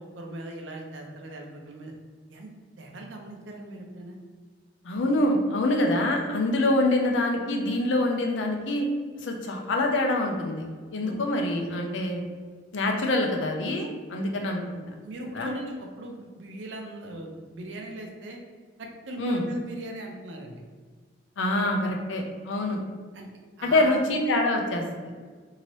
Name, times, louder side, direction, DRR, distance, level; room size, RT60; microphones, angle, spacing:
voice 1, 0.0-1.9 2.3-4.2 11.0-11.2 15.0-18.4 18.8-20.6 23.1-23.3 23.6-24.0, right 1 dB, 85° right, 1 dB, 0.6 m, -39 dB
voice 2, 4.8-8.9 9.2-10.7 10.9-12.2 12.7-14.6 15.3-15.5 19.2-19.4 21.4-22.8 23.6-24.8, left 1 dB, 85° left, 2 dB, 0.5 m, -25 dB
2.9 x 2.7 x 3.1 m, 1.5 s
head